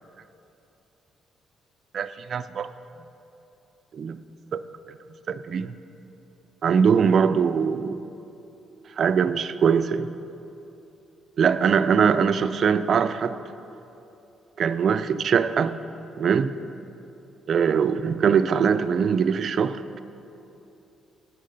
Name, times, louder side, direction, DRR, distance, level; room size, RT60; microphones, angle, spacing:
voice 1, 1.9-2.7 3.9-4.2 4.5-4.6 4.9-5.0 5.3-5.7 6.6-8.1 9.0-10.1 11.4-13.4 14.6-15.7 16.2-16.5 17.5-20.0, right 6 dB, 55° right, 0.3 m, -22 dB
9.1 x 6.5 x 5.5 m
cardioid pair, 90°, 0 cm